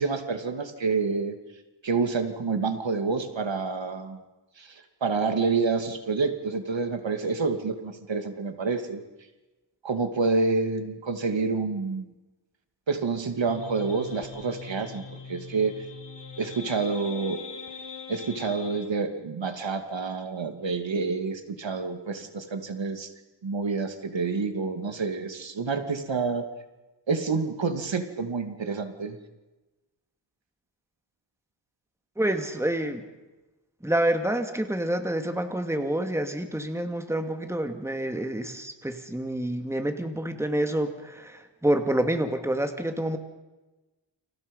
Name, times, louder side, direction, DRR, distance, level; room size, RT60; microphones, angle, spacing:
voice 1, 0.0-1.4 1.8-4.2 4.6-9.0 9.8-12.1 12.9-15.0 15.3-15.7 16.4-17.4 18.1-23.1 23.4-26.5 27.1-29.2, right 4 dB, 75° right, 7 dB, 2.7 m, -28 dB
sound 1, 13.5-18.9, left 5 dB, 65° left, 7.9 m, -41 dB
voice 2, 32.2-33.0 33.8-43.2, right 1 dB, 5° right, 6 dB, 2.4 m, -28 dB
30.0 x 27.5 x 5.5 m, 1.1 s
wide cardioid pair, 120°, 46 cm